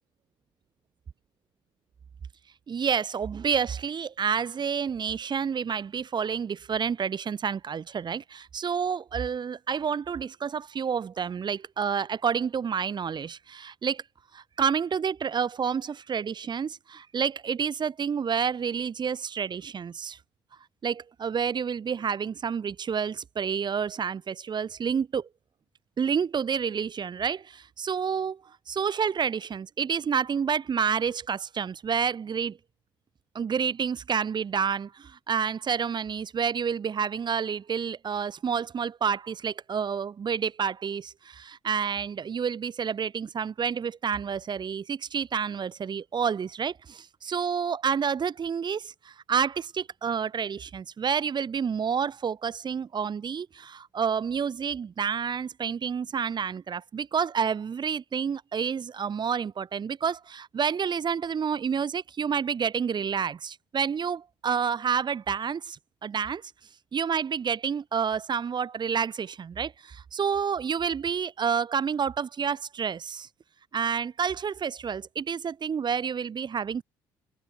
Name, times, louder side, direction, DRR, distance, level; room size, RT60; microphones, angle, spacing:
voice 1, 2.7-14.0 14.3-20.2 20.8-25.3 26.0-28.4 28.7-32.6 33.3-66.4 66.9-73.3 73.7-76.8, right 7 dB, 45° right, 2.2 m, -29 dB
supercardioid pair, 65°, 11 cm